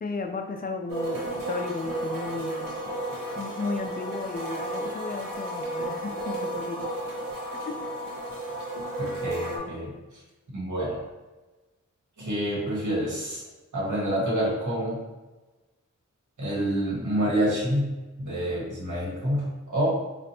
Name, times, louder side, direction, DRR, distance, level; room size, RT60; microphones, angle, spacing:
voice 1, 0.0-2.7 3.4-6.8 7.7-7.8, left 4 dB, 30° left, 4 dB, 0.4 m, -34 dB
sound 1, 0.9-9.6, right 1 dB, 85° right, 1.0 m, -33 dB
voice 2, 9.0-9.9 10.5-11.0 12.2-13.4 13.7-15.0 16.4-17.9 18.2-19.9, equal, 65° right, -6 dB, 1.5 m, -27 dB
4.3 x 2.5 x 2.8 m, 1.2 s
wide cardioid pair, 65°, 32 cm